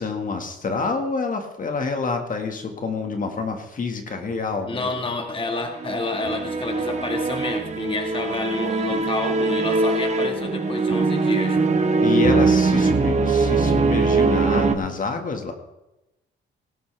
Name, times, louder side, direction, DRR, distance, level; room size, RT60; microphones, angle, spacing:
voice 1, 0.0-4.9 12.0-15.5, left 4 dB, 40° left, 5 dB, 1.8 m, -27 dB
voice 2, 4.7-11.6, left 3 dB, 25° left, 4 dB, 1.7 m, -29 dB
sound 1, 5.7-14.8, right 3 dB, 35° right, 1.3 m, -21 dB
18.5 x 12.0 x 3.4 m, 0.95 s
cardioid pair, 90°, 20 cm